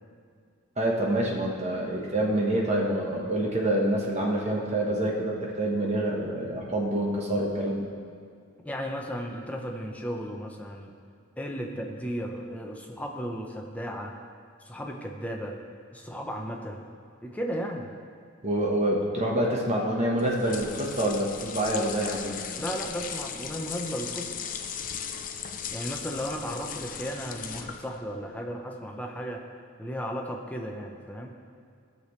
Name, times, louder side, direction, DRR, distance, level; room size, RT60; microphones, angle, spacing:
voice 1, 0.8-7.9 18.4-22.5, right 1 dB, 35° right, -2 dB, 1.3 m, -27 dB
voice 2, 8.6-10.9 11.4-14.1 14.6-15.6 15.9-16.8 17.2-17.9 22.6-24.4 25.7-29.4 29.8-31.3, equal, 5° left, 1 dB, 0.8 m, -35 dB
sound 1, 20.2-28.0, left 7 dB, 40° left, 0.5 m, -37 dB
16.5 x 6.8 x 3.2 m, 2.3 s
head